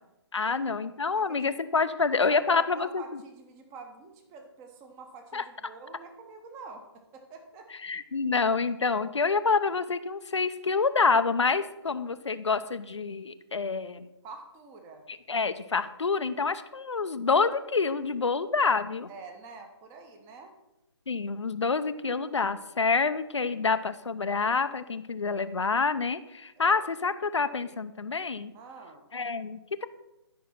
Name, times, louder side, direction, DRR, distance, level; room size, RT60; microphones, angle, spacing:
voice 1, 0.3-3.0 5.3-5.4 7.8-14.1 15.1-19.1 21.1-28.5 29.1-29.9, left 4 dB, 85° left, 10 dB, 0.6 m, -27 dB
voice 2, 1.1-1.5 1.7-6.9 7.1-7.7 14.2-15.0 19.1-20.5 26.6-26.8 28.5-29.0, right 4 dB, 20° right, 5 dB, 1.2 m, -47 dB
11.5 x 5.5 x 5.9 m, 0.94 s
figure-of-eight pair, 145°, 15 cm